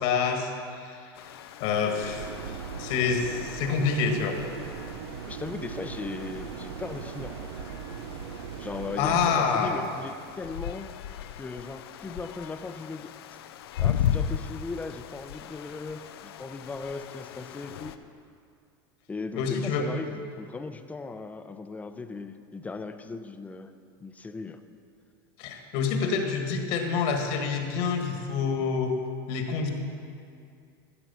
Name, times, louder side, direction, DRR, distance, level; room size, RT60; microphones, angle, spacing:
voice 1, 0.0-0.5 0.8-1.3 1.6-2.3 2.8-4.4 9.0-9.8 19.4-19.9 25.4-29.0 29.3-29.7, left 5 dB, 60° left, 3 dB, 1.8 m, -27 dB
sound 1, 1.2-18.0, left 9 dB, 85° left, 0.6 m, -37 dB
sound 2, 2.0-9.4, right 7 dB, 85° right, 0.6 m, -39 dB
voice 2, 5.3-7.4 8.6-10.9 11.4-13.2 13.8-18.0 19.1-23.7 24.0-24.6, left 4 dB, 10° left, 9 dB, 0.6 m, -38 dB
14.0 x 7.6 x 5.7 m, 2.4 s
supercardioid pair, 120°, 13 cm